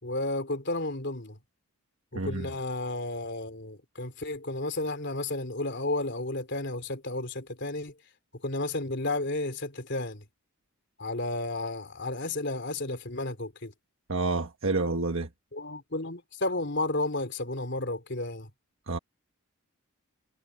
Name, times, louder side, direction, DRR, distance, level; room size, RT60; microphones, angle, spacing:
voice 1, 0.0-1.4 2.1-7.9 8.4-10.3 11.0-13.7 15.5-18.5, left 2 dB, 55° left, 3.6 m, -32 dB
voice 2, 2.1-2.5 14.1-15.3 18.9-19.0, right 3 dB, 65° right, 1.4 m, -29 dB
head